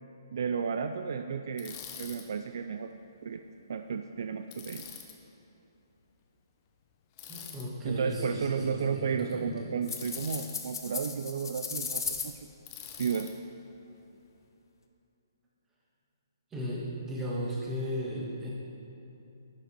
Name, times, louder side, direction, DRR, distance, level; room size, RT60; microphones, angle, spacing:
voice 1, 0.3-2.9 3.2-3.4 3.7-4.8 7.8-12.4 13.0-13.3, right 6 dB, 60° right, 7 dB, 0.4 m, -33 dB
Bicycle, 1.6-2.2 4.5-5.1 7.2-7.7 9.9-10.6 12.7-13.3, left 9 dB, 30° left, 0.8 m, -45 dB
voice 2, 7.3-8.6 8.8-9.7 16.5-18.5, equal, 10° right, -5 dB, 1.7 m, -35 dB
sound 1, 9.8-12.3, left 5 dB, 70° left, 0.9 m, -36 dB
11.0 x 5.8 x 4.4 m, 3.0 s
hypercardioid pair, 140°, 2 cm